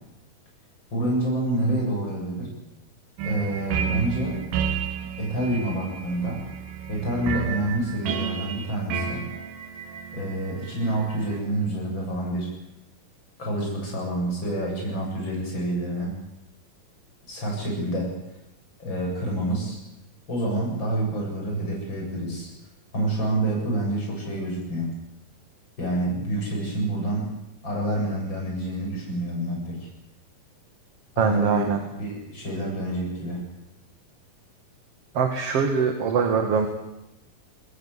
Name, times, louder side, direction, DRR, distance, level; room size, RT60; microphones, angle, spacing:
voice 1, 0.9-2.6 3.2-4.4 5.2-6.4 6.9-9.3 10.1-12.5 13.4-16.1 17.3-18.1 18.8-19.8 20.3-22.5 22.9-24.9 25.8-27.3 27.6-29.9 31.2-31.7 32.0-33.4, right 1 dB, 30° left, -1 dB, 8.6 m, -28 dB
sound 1, 3.2-11.4, right 7 dB, 80° right, 3.6 m, -31 dB
voice 2, 31.2-31.8 35.1-36.7, right 5 dB, 50° right, 5 dB, 2.5 m, -22 dB
23.5 x 20.5 x 8.3 m, 0.89 s
omnidirectional pair, 4.2 m